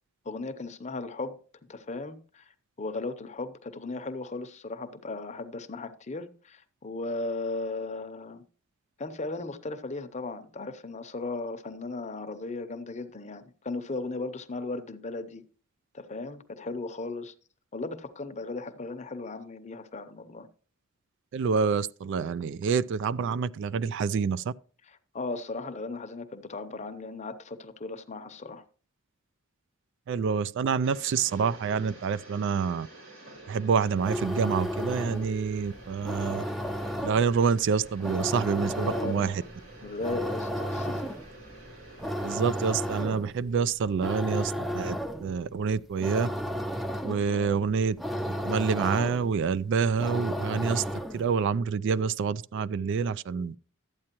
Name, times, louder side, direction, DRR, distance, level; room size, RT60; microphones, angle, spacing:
voice 1, 0.2-1.4 1.7-8.4 9.0-15.4 15.9-17.3 17.7-20.5 24.8-28.6 38.6-39.4 39.8-41.1 41.9-42.0 47.3-47.7, left 3 dB, 35° left, 0.7 m, -36 dB
voice 2, 21.3-24.5 30.1-32.9 33.5-36.4 37.0-39.4 42.2-46.3 47.0-48.0 48.4-50.8 51.1-53.6, right 6 dB, 60° right, 0.3 m, -27 dB
sound 1, 30.8-43.1, right 2 dB, 80° right, 4.8 m, -49 dB
sound 2, 33.9-51.4, equal, ahead, 0.4 m, -34 dB
12.0 x 8.6 x 2.9 m
head